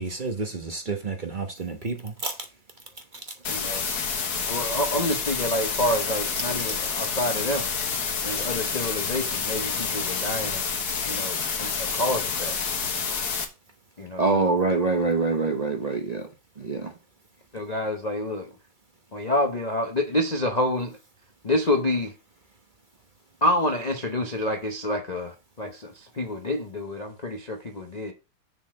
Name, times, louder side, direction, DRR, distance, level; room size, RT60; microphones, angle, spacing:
voice 1, 0.0-2.3, right 3 dB, 30° right, 1.0 m, -31 dB
sound 1, 3.4-13.4, left 5 dB, 55° left, 1.7 m, -28 dB
voice 2, 3.5-3.9 4.5-7.7 8.2-10.7 11.0-12.6 14.0-14.5 17.5-18.5 19.1-21.0 21.4-22.1 23.4-28.1, left 1 dB, 40° left, 0.6 m, -28 dB
voice 3, 14.2-16.2 16.6-16.9, right 3 dB, 50° right, 0.4 m, -24 dB
6.9 x 4.1 x 6.5 m
omnidirectional pair, 2.1 m